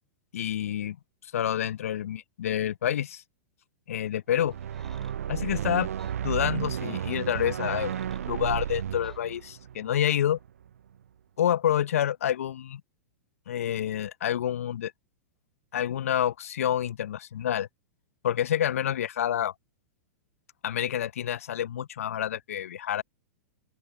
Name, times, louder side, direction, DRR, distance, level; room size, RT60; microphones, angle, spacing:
voice 1, 0.3-1.0 1.3-3.2 3.9-4.5 5.3-5.9 6.2-7.9 8.3-10.4 11.4-12.8 13.5-14.9 15.7-17.7 18.2-19.5 20.6-23.0, left 10 dB, 70° left, 0.9 m, -28 dB
sound 1, 4.3-10.7, right 9 dB, 70° right, 0.4 m, -33 dB
sound 2, 4.5-5.2 6.0-6.2 7.3-8.3 9.0-9.2, left 1 dB, 5° left, 6.2 m, -55 dB
open air
figure-of-eight pair, 105°, 8 cm